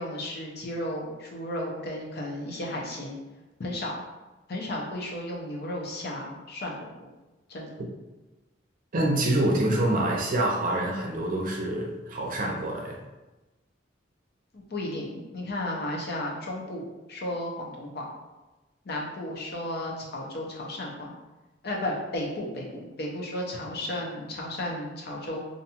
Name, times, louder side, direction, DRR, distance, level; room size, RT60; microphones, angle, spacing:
voice 1, 0.0-3.2 3.6-4.0 4.5-6.9 7.5-7.7 14.5-18.1 18.8-21.1 21.6-25.5, left 1 dB, 60° left, -1 dB, 0.6 m, -34 dB
voice 2, 8.9-13.0, right 1 dB, 45° right, -1 dB, 0.5 m, -26 dB
2.5 x 2.3 x 2.8 m, 1.1 s
head